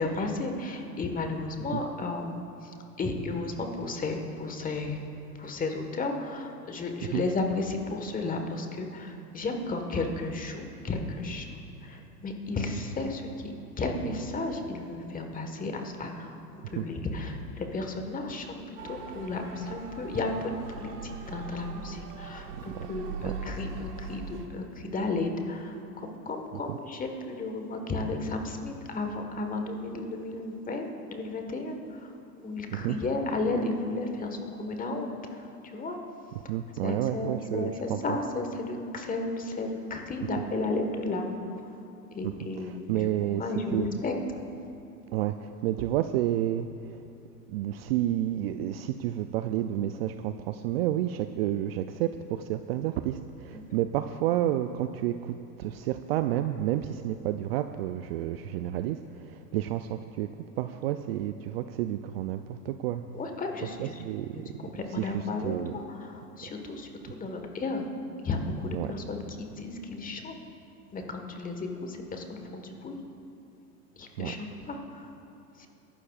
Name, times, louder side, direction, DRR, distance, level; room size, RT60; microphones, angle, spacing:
voice 1, 0.0-2.7 3.0-5.0 5.4-16.4 16.7-32.1 32.4-36.0 36.8-41.4 41.6-41.7 42.1-43.1 43.4-44.1 53.5-53.8 63.1-64.0 64.3-67.9 68.2-70.3 70.9-73.0 74.0-75.1 75.6-75.7, left 2 dB, 15° left, 4 dB, 1.4 m, -33 dB
Motor vehicle (road) / Siren, 18.8-24.5, right 5 dB, 70° right, 1.6 m, -41 dB
voice 2, 36.5-38.2 42.2-43.4 43.7-43.9 45.1-47.0 47.5-63.0 63.8-65.7 68.7-68.9 74.2-74.3, right 12 dB, 45° right, 9 dB, 0.4 m, -30 dB
23.0 x 12.0 x 2.4 m, 2.7 s
hypercardioid pair, 105°, 48 cm